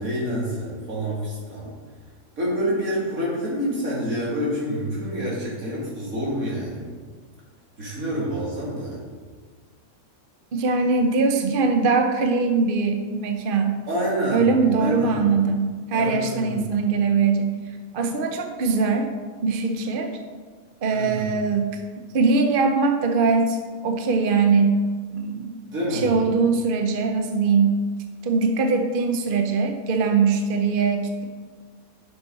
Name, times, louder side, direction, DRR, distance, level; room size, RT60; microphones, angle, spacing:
voice 1, 0.0-1.7 2.4-6.9 7.8-9.0 13.9-14.5 14.8-15.2 15.9-16.6 20.9-21.3 25.7-26.1, equal, 65° right, -5 dB, 3.1 m, -27 dB
voice 2, 10.5-13.8 14.3-17.6 17.9-19.1 19.4-20.1 20.8-21.8 22.1-23.6 23.8-24.8 25.1-25.6 25.9-27.8 28.2-31.2, right 4 dB, 45° right, 5 dB, 0.7 m, -21 dB
10.5 x 6.9 x 4.1 m, 1.5 s
omnidirectional pair, 1.6 m